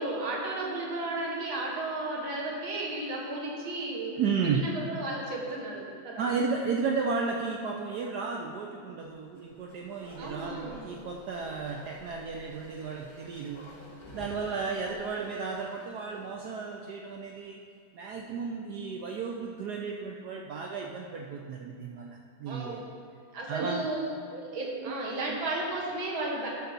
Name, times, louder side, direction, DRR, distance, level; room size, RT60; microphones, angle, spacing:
voice 1, 0.0-4.2 4.4-6.3 10.2-10.8 14.9-15.0 22.5-22.8 23.3-24.0 24.3-26.5, right 2 dB, 90° right, -2 dB, 2.2 m, -34 dB
voice 2, 4.2-4.7 6.2-13.7 14.1-17.6 17.9-22.9 23.5-24.0 24.8-24.9 25.2-25.4, right 5 dB, 70° right, 1 dB, 1.0 m, -33 dB
Bark, 9.3-16.9 17.2-17.3, left 1 dB, 15° left, 1.2 m, -51 dB
12.5 x 5.7 x 3.9 m, 2.4 s
omnidirectional pair, 2.1 m